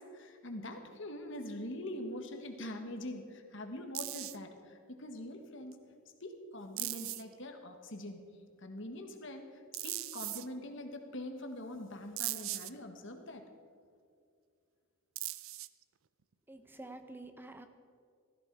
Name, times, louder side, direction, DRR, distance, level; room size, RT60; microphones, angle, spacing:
voice 1, 0.0-5.8 6.2-8.2 8.6-13.4, left 1 dB, 60° left, 5 dB, 1.6 m, -44 dB
sound 1, 3.9-4.4 5.7-5.8 6.8-7.3 9.7-10.5 12.2-12.7 15.2-15.8, right 17 dB, 70° right, 0.5 m, -38 dB
voice 2, 16.5-17.7, right 2 dB, 10° right, 8 dB, 0.6 m, -48 dB
16.5 x 14.5 x 4.7 m, 2.3 s
head